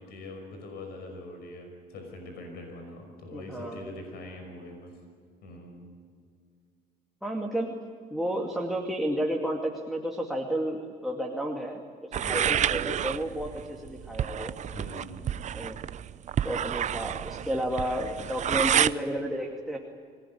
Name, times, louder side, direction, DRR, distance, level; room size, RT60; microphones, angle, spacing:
voice 1, 0.0-4.9 5.4-5.8 12.2-12.5 14.7-15.4, left 2 dB, 70° left, 4 dB, 5.6 m, -42 dB
voice 2, 3.3-3.9 7.2-7.8 8.1-14.5 15.5-15.8 16.4-19.8, right 1 dB, ahead, -1 dB, 2.5 m, -32 dB
sound 1, 12.1-18.9, right 10 dB, 45° right, 0.6 m, -29 dB
25.0 x 18.5 x 9.7 m, 2.1 s
cardioid pair, 110°, 17 cm